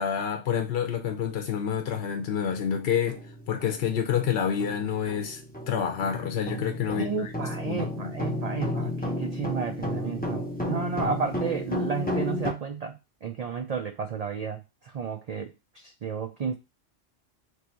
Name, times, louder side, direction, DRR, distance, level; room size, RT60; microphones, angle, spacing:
voice 1, 0.0-5.4 5.7-7.3 7.6-8.1 8.7-8.9 11.0-11.1, left 8 dB, 60° left, 0.8 m, -28 dB
sound 1, 1.9-2.0 2.5-2.7 3.1-12.5, left 1 dB, 10° left, 0.5 m, -33 dB
voice 2, 6.9-16.6, right 6 dB, 80° right, 0.3 m, -32 dB
3.1 x 2.5 x 4.3 m
omnidirectional pair, 1.2 m